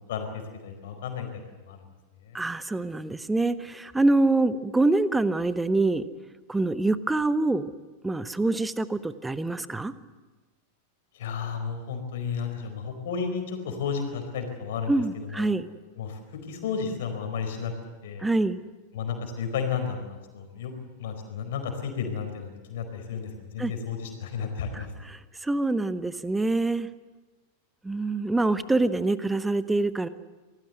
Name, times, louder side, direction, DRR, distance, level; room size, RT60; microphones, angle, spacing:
voice 1, 0.1-1.8 2.2-2.4 11.1-15.5 16.0-17.7 18.0-18.3 18.9-20.7 21.0-24.9, left 6 dB, 55° left, 5 dB, 4.6 m, -33 dB
voice 2, 2.3-6.0 6.5-7.7 8.0-9.9 14.9-15.7 18.2-18.6 23.6-23.7 24.7-26.9 27.8-30.1, right 2 dB, 10° right, 14 dB, 1.0 m, -25 dB
27.0 x 19.0 x 7.9 m, 1.2 s
figure-of-eight pair, 90°, 0 cm